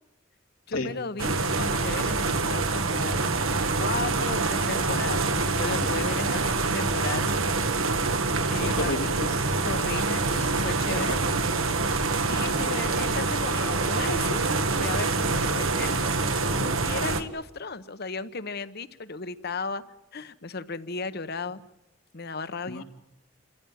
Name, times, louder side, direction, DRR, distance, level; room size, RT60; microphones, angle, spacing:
voice 1, 0.7-3.3 3.8-6.4 6.7-7.4 8.5-8.9 9.6-11.2 12.3-14.4 14.7-16.2 16.8-19.8 20.1-21.6 22.1-22.8, left 4 dB, 50° left, 13 dB, 1.0 m, -35 dB
sound 1, 1.2-17.2, right 3 dB, 85° right, 1.7 m, -26 dB
voice 2, 8.5-9.5 16.6-16.8 22.7-22.8, left 2 dB, 85° left, 4 dB, 2.5 m, -32 dB
27.5 x 15.5 x 9.3 m, 0.90 s
head